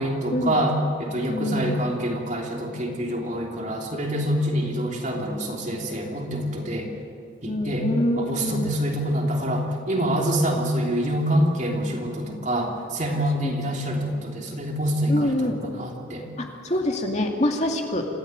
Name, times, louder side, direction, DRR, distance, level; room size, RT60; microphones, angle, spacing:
voice 1, 0.0-6.9 7.4-7.9 8.2-16.3, equal, 40° right, 0 dB, 3.2 m, -26 dB
voice 2, 1.3-1.8 7.5-8.8 13.4-13.5 15.1-15.6 16.4-18.0, left 1 dB, 35° left, 2 dB, 2.4 m, -25 dB
27.0 x 15.5 x 9.4 m, 2.6 s
head